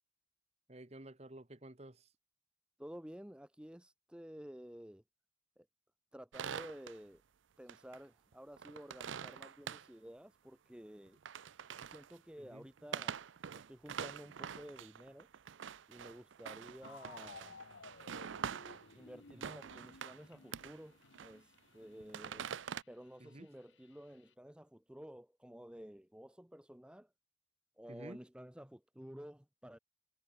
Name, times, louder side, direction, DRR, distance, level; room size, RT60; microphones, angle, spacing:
voice 1, 0.7-2.1 12.4-12.7 19.3-19.4 23.2-23.5 27.9-28.2, right 1 dB, 35° right, 1.3 m, -52 dB
voice 2, 2.8-5.0 5.6-5.7 6.1-7.2 7.6-11.2 11.9-13.2 13.5-15.3 15.9-17.6 18.9-22.5 22.9-27.1 27.8-29.8, equal, 5° right, 0.7 m, -52 dB
sound 1, 6.3-7.0 7.7-8.0 8.3-9.9 11.1-12.2 12.8-18.9 19.3-20.2 20.5-20.8 21.1-21.6 22.0-22.8, right 7 dB, 80° right, 0.5 m, -45 dB
sound 2, 16.8-24.3, left 4 dB, 80° left, 1.0 m, -58 dB
head